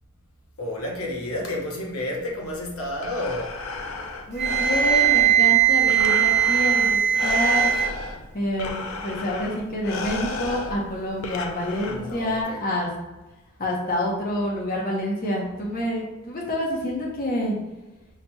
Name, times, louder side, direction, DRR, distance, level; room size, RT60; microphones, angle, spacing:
voice 1, 0.6-3.6 11.9-12.6, left 1 dB, 90° left, 0 dB, 0.9 m, -31 dB
Breathing, 2.8-12.4, left 3 dB, 75° left, 0.5 m, -34 dB
voice 2, 4.3-6.8 7.2-7.7 8.3-12.9 13.6-17.6, left 1 dB, 45° left, -3 dB, 0.8 m, -27 dB
Wind instrument woodwind instrument, 4.4-7.9, right 10 dB, 55° right, 0.6 m, -19 dB
5.7 x 2.9 x 2.3 m, 1.1 s
head